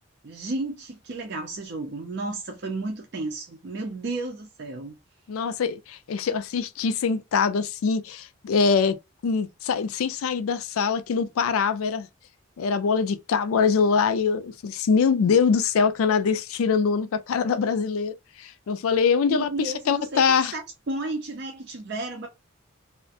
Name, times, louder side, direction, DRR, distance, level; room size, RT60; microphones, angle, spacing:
voice 1, 0.2-5.0 19.3-22.3, right 2 dB, 55° right, 0.5 m, -33 dB
voice 2, 5.3-9.0 9.2-12.1 12.6-20.5, left 5 dB, 85° left, 0.4 m, -23 dB
2.4 x 2.1 x 2.6 m
head